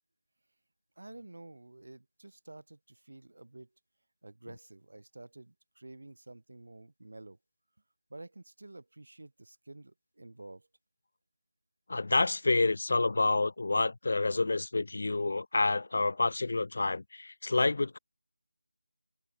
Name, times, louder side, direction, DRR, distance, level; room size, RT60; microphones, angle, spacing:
voice 1, 1.0-3.7 4.2-7.4 8.1-10.7, right 2 dB, 65° right, 2.6 m, -50 dB
voice 2, 11.9-18.0, left 3 dB, 45° left, 0.4 m, -28 dB
figure-of-eight pair, 175°, 0 cm